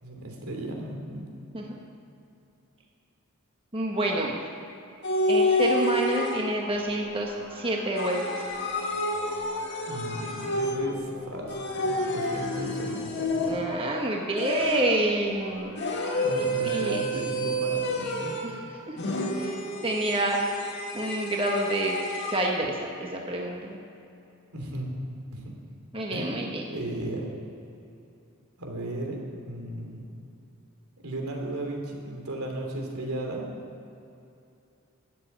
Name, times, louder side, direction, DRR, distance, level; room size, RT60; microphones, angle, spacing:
voice 1, 0.0-1.3 9.8-13.6 16.2-18.4 24.5-24.9 25.3-25.5 26.1-26.4 26.6-27.3 28.6-30.1 31.0-33.5, right 1 dB, 85° right, 1 dB, 3.0 m, -35 dB
voice 2, 3.7-4.4 5.3-8.4 13.5-15.7 16.0-17.0 18.4-18.5 18.9-19.0 19.4-20.4 20.9-22.0 22.3-23.8 25.9-26.6, right 1 dB, 25° right, -1 dB, 1.3 m, -28 dB
sound 1, 5.0-6.8 8.0-11.0 11.5-13.8 14.4-15.1 15.8-18.6 19.0-22.5, left 1 dB, 55° left, 2.1 m, -29 dB
sound 2, 6.7-16.7, left 1 dB, 20° left, 1.6 m, -47 dB
13.0 x 7.6 x 9.1 m, 2.8 s
head